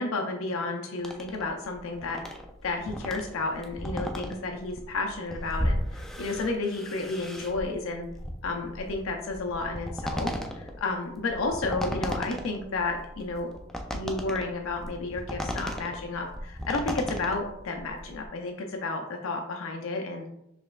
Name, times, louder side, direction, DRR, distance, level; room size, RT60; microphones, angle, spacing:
voice 1, 0.0-2.2 2.6-8.1 8.4-13.5 13.9-20.3, left 3 dB, 80° left, 2 dB, 0.5 m, -32 dB
sound 1, 1.0-18.3, equal, ahead, 0.4 m, -35 dB
5.1 x 3.3 x 2.4 m, 0.80 s
head